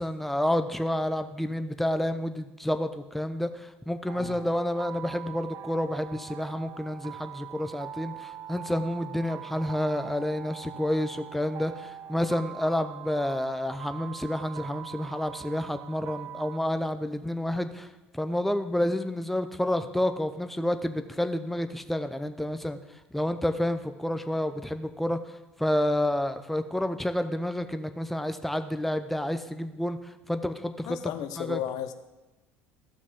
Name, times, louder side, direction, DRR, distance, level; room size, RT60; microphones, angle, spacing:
voice 1, 0.0-17.9 18.1-22.8 23.1-31.0 31.4-31.6, left 1 dB, 5° left, 9 dB, 0.7 m, -29 dB
sound 1, 4.1-16.6, right 11 dB, 45° right, 0.4 m, -43 dB
voice 2, 30.9-31.9, left 11 dB, 60° left, 10 dB, 0.7 m, -34 dB
14.0 x 6.1 x 3.7 m, 1.0 s
hypercardioid pair, 70°, 7 cm